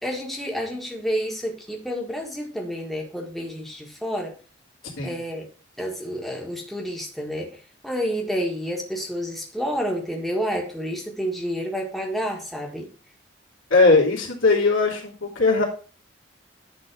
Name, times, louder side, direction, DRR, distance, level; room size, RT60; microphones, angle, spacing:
voice 1, 0.0-4.3 5.0-5.5 5.8-7.6 7.8-12.9, equal, ahead, 0 dB, 1.6 m, -29 dB
voice 2, 13.7-15.6, left 3 dB, 90° left, -2 dB, 3.0 m, -19 dB
10.0 x 4.0 x 6.1 m, 0.37 s
head